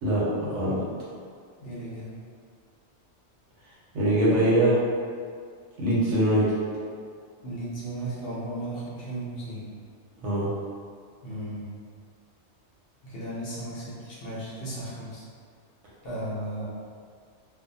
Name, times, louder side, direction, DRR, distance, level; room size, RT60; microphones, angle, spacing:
voice 1, 0.0-0.8 3.9-4.8 5.8-6.4 10.2-10.5, right 1 dB, 85° right, -7 dB, 1.1 m, -22 dB
voice 2, 1.6-2.1 7.4-9.6 11.2-11.7 13.0-15.2 16.0-16.7, right 1 dB, 60° left, -9 dB, 0.9 m, -35 dB
2.6 x 2.1 x 2.6 m, 2.1 s
omnidirectional pair, 1.2 m